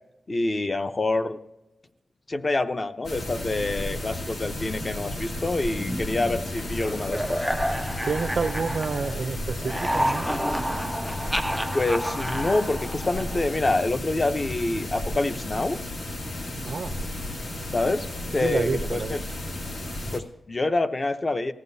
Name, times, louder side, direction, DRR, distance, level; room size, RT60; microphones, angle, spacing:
voice 1, 0.3-1.4 2.3-7.5 11.7-15.8 17.7-18.1 18.3-19.2 20.1-21.5, left 2 dB, 30° left, 0.7 m, -26 dB
sound 1, 3.0-20.2, left 1 dB, 70° left, 2.0 m, -33 dB
sound 2, 5.7-9.2 9.5-13.6, equal, ahead, 0.3 m, -30 dB
voice 2, 8.0-10.3 16.6-17.0 18.4-19.2, right 5 dB, 60° right, 0.6 m, -29 dB
19.0 x 15.5 x 2.7 m
wide cardioid pair, 150°, 0 cm